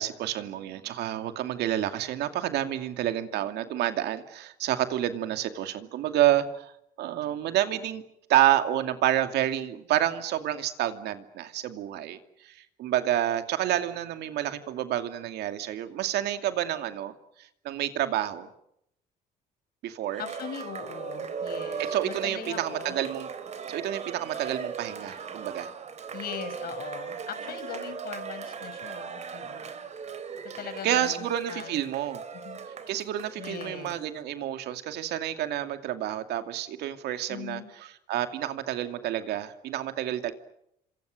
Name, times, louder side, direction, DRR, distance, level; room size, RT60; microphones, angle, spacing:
voice 1, 0.0-6.7 7.0-8.0 8.3-17.1 17.6-18.5 19.8-20.2 21.9-23.3 23.7-25.7 30.8-32.2 32.9-37.6 38.1-40.3, right 12 dB, 75° right, 8 dB, 2.5 m, -29 dB
Cheering, 20.1-34.0, right 6 dB, 40° right, 3.7 m, -38 dB
voice 2, 20.2-23.0 26.1-29.7 30.5-31.8 32.3-32.6 33.4-34.0 37.3-37.7, left 8 dB, 65° left, 9 dB, 6.4 m, -40 dB
29.5 x 26.5 x 6.5 m, 0.77 s
cardioid pair, 110°, 17 cm